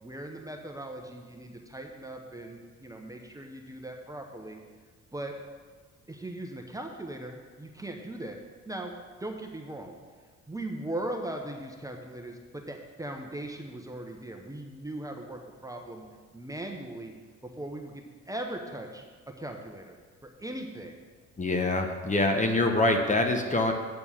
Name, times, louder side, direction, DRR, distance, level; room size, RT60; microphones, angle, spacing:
voice 1, 0.0-4.6 5.1-5.4 6.1-8.9 9.2-9.9 10.5-16.0 16.3-17.1 17.4-20.0 20.2-21.0, right 1 dB, 10° right, 2 dB, 0.9 m, -39 dB
voice 2, 21.4-23.7, left 2 dB, 25° left, 4 dB, 1.0 m, -25 dB
8.8 x 4.4 x 7.1 m, 1.5 s
cardioid pair, 90°, 30 cm